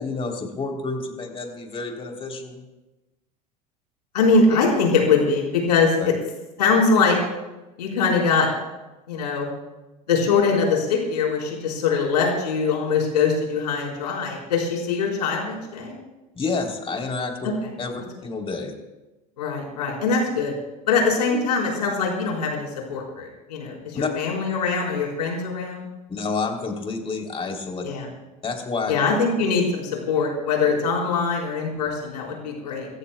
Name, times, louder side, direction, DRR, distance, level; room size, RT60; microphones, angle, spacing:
voice 1, 0.0-2.6 6.0-6.1 16.3-17.3 17.8-18.7 23.9-24.1 26.1-27.8 28.4-28.9, left 4 dB, 25° left, 2 dB, 3.3 m, -29 dB
voice 2, 4.1-6.1 6.6-7.2 7.8-8.5 9.1-9.5 10.1-16.0 19.4-20.5 20.8-25.9 27.8-28.1 28.9-32.9, left 4 dB, 85° left, -2 dB, 4.5 m, -22 dB
29.0 x 14.5 x 2.3 m, 1.1 s
hypercardioid pair, 85°, 20 cm